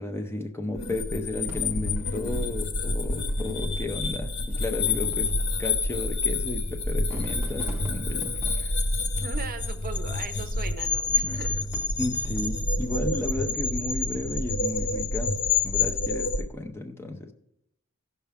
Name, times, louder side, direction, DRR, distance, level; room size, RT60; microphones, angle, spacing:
voice 1, 0.0-8.8 12.0-15.4 15.6-17.3, left 2 dB, 10° left, 4 dB, 0.5 m, -33 dB
sound 1, 0.7-16.4, left 3 dB, 55° left, 0.7 m, -28 dB
Fireworks, 1.5-3.1 3.9-4.0 4.7-10.0 11.1-12.8 13.4-13.9, equal, 10° right, 0.9 m, -46 dB
voice 2, 9.2-11.7, right 4 dB, 45° right, 8 dB, 0.7 m, -38 dB
16.5 x 5.6 x 3.5 m, 0.81 s
head